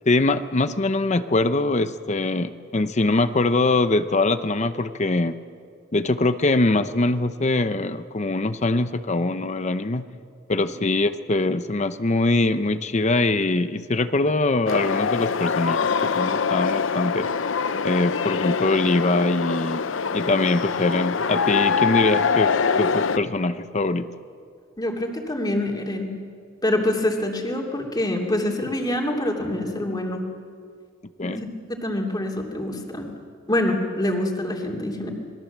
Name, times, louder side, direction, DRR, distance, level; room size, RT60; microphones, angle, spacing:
voice 1, 0.1-5.4 5.9-10.0 10.5-17.3 17.8-19.8 20.1-24.1 31.2-31.4, left 2 dB, 35° left, 11 dB, 0.7 m, -23 dB
sound 1, 14.7-23.2, left 5 dB, 85° left, 0.7 m, -24 dB
voice 2, 24.8-26.1 26.6-30.2 31.3-33.1 33.5-35.1, left 1 dB, 20° left, 1 dB, 2.9 m, -25 dB
27.0 x 20.5 x 7.4 m, 2.2 s
head